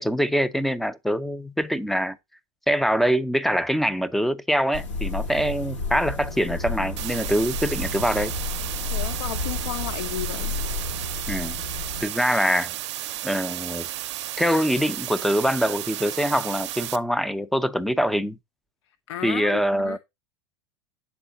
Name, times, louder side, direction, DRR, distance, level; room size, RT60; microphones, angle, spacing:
voice 1, 0.0-2.2 2.7-8.3 11.3-11.6 12.0-12.7 13.2-13.9 14.4-18.4 19.2-20.0, equal, ahead, 0.4 m, -24 dB
sound 1, 4.7-12.0, left 3 dB, 90° left, 1.4 m, -31 dB
sound 2, 7.0-17.0, right 14 dB, 75° right, 0.5 m, -33 dB
voice 2, 8.9-10.6 18.9-20.0, left 13 dB, 70° left, 0.4 m, -34 dB
7.1 x 3.7 x 3.9 m
hypercardioid pair, 105°, 15 cm